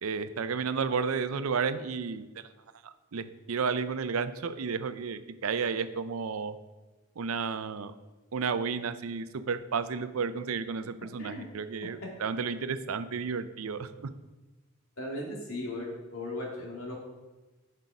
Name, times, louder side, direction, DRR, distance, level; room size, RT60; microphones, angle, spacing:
voice 1, 0.0-2.5 2.8-6.6 7.2-7.9 8.3-14.1, right 5 dB, 90° right, 12 dB, 0.5 m, -32 dB
voice 2, 15.0-17.0, left 1 dB, 85° left, -2 dB, 2.3 m, -37 dB
7.8 x 5.6 x 4.8 m, 1.2 s
head